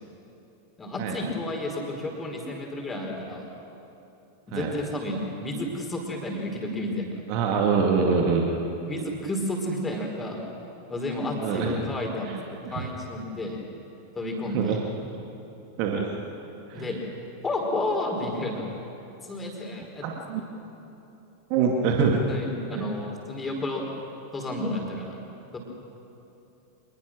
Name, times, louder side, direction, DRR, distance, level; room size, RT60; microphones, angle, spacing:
voice 1, 0.8-3.5 4.5-7.2 8.9-10.4 10.9-13.6 14.1-14.8 16.7-17.0 17.4-18.7 19.2-20.1 22.3-23.9 24.3-25.2 25.5-25.6, left 1 dB, 15° left, 1 dB, 4.9 m, -31 dB
voice 2, 7.3-8.4 11.4-11.8 12.2-12.8 14.5-14.8 15.8-16.1 16.7-16.9 20.0-20.4 21.5-22.2 22.7-22.8, right 5 dB, 45° right, 0 dB, 2.3 m, -25 dB
26.0 x 21.5 x 6.3 m, 2.9 s
figure-of-eight pair, 90°, 0 cm